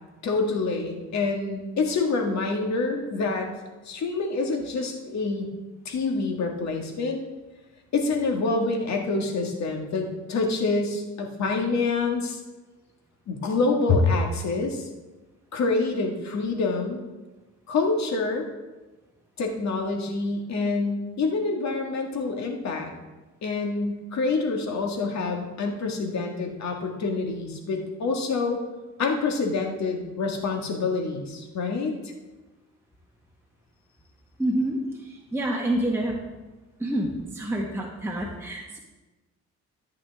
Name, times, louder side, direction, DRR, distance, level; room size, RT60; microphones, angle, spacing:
voice 1, 0.2-3.5 3.9-5.5 5.9-7.2 7.9-12.4 13.3-14.9 15.5-17.0 17.7-18.5 19.4-22.9 23.4-28.6 29.0-32.0, left 3 dB, 65° left, 2 dB, 2.0 m, -26 dB
voice 2, 34.4-36.1 36.8-38.8, right 1 dB, 10° right, -2 dB, 1.5 m, -28 dB
14.5 x 8.3 x 3.6 m, 1.2 s
cardioid pair, 90°, 30 cm